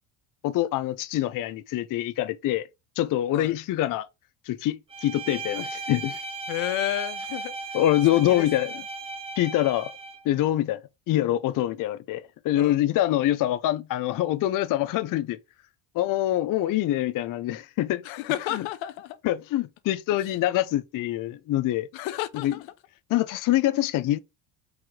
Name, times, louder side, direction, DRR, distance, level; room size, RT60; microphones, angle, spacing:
voice 1, 0.4-2.7 3.0-4.1 4.5-6.2 7.7-8.7 9.4-9.9 10.3-10.8 11.1-15.4 15.9-18.0 18.5-18.7 19.2-21.9 22.3-22.5 23.1-24.2, left 14 dB, 45° left, 0.5 m, -25 dB
Bowed string instrument, 4.9-10.3, right 3 dB, 15° right, 0.7 m, -36 dB
voice 2, 6.5-7.8 8.3-8.5 12.5-12.8 18.0-19.2 20.1-20.2 21.9-22.7, left 14 dB, 80° left, 0.8 m, -31 dB
4.7 x 3.0 x 3.7 m
cardioid pair, 110°, 46 cm